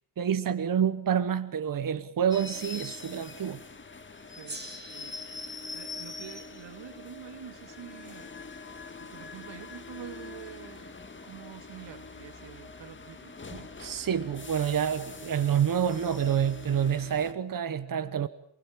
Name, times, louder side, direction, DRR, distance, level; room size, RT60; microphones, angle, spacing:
voice 1, 0.2-3.6 13.5-18.3, right 8 dB, 50° right, 1.2 m, -28 dB
sound 1, 2.3-17.3, left 4 dB, 25° left, 2.3 m, -44 dB
voice 2, 4.3-4.6 4.9-5.2 5.7-8.3 9.0-13.4, right 9 dB, 85° right, 2.5 m, -47 dB
Gong, 4.4-9.2, right 2 dB, 25° right, 6.4 m, -49 dB
28.5 x 20.5 x 8.8 m
cardioid pair, 115°, 42 cm